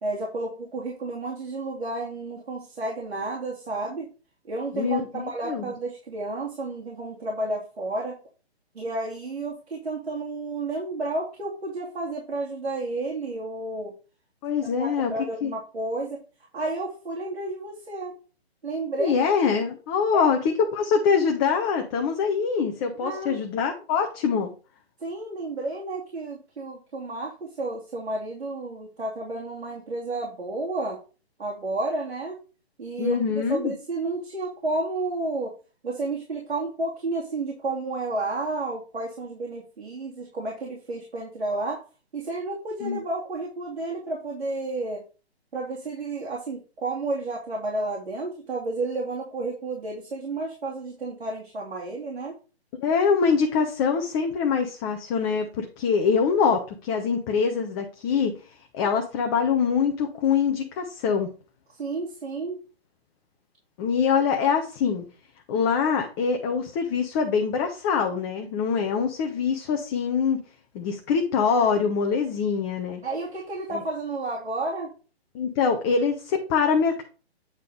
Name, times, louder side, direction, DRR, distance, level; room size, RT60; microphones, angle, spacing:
voice 1, 0.0-4.1 4.4-8.2 8.7-13.9 14.8-16.2 16.5-18.2 18.6-19.2 20.1-20.3 23.0-23.4 25.0-31.0 31.4-32.4 32.8-33.2 33.5-35.5 35.8-41.8 42.1-45.0 45.5-52.3 61.8-62.6 73.0-74.9, right 2 dB, 70° right, -2 dB, 2.8 m, -31 dB
voice 2, 4.7-5.6 14.4-15.1 15.4-15.5 19.0-20.4 20.7-24.5 33.0-33.7 42.8-43.0 52.8-58.3 58.7-61.3 63.8-65.0 65.5-70.4 70.7-73.0 73.7-73.8 75.3-77.0, left 6 dB, 20° left, 3 dB, 0.9 m, -24 dB
9.0 x 3.9 x 5.0 m, 0.34 s
figure-of-eight pair, 135°, 32 cm